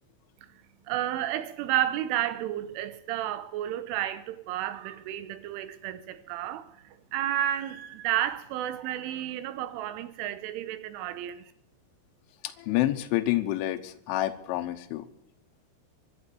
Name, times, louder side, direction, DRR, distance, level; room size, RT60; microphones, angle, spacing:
voice 1, 0.9-11.5, right 12 dB, 80° right, 3.4 m, -31 dB
voice 2, 12.4-15.1, left 15 dB, 80° left, 3.3 m, -28 dB
24.0 x 12.0 x 4.6 m
omnidirectional pair, 5.7 m